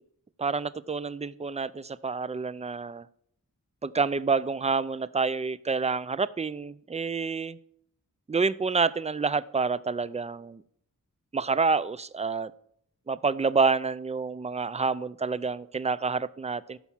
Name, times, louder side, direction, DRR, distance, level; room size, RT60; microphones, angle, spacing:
voice 1, 0.4-3.1 3.8-7.6 8.3-10.6 11.3-12.5 13.1-16.8, right 4 dB, 20° right, 17 dB, 0.4 m, -28 dB
15.5 x 5.9 x 7.2 m, 0.70 s
wide cardioid pair, 130°, 33 cm